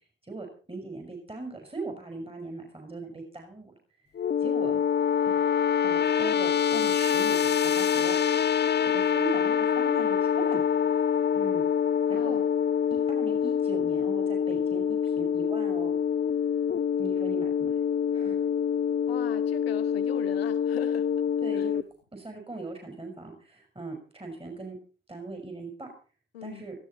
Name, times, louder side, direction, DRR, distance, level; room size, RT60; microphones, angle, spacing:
voice 1, 0.2-3.7 4.4-4.8 5.2-5.5 5.8-8.5 8.8-10.6 11.3-11.7 12.1-12.4 12.9-16.0 17.0-17.8 18.1-18.4 21.4-21.8 22.1-24.8 25.1-25.9 26.4-26.8, right 3 dB, 20° right, 3 dB, 5.2 m, -39 dB
sound 1, 4.2-21.8, left 8 dB, 35° left, 0.7 m, -25 dB
voice 2, 12.1-12.5 19.1-21.1 21.5-21.7 26.3-26.7, left 10 dB, 90° left, 11 dB, 1.1 m, -40 dB
17.5 x 14.0 x 4.4 m, 0.37 s
hypercardioid pair, 45°, 30 cm